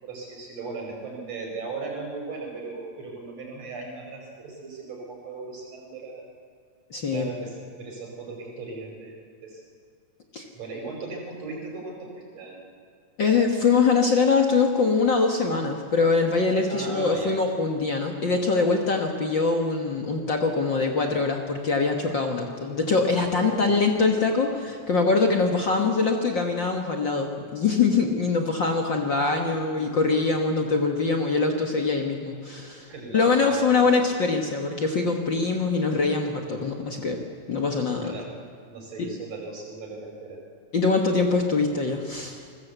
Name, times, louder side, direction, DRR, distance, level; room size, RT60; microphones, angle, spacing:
voice 1, 0.0-6.3 7.1-9.6 10.5-12.6 16.7-17.3 22.5-22.7 23.3-23.8 29.8-30.0 32.9-33.9 38.0-38.3 38.7-40.4, right 3 dB, 60° right, 0 dB, 6.1 m, -37 dB
voice 2, 6.9-7.3 10.3-10.4 13.2-37.2 37.5-38.1 39.0-39.1 40.7-42.4, left 4 dB, 45° left, 2 dB, 2.0 m, -23 dB
28.5 x 20.5 x 8.2 m, 2.1 s
omnidirectional pair, 3.4 m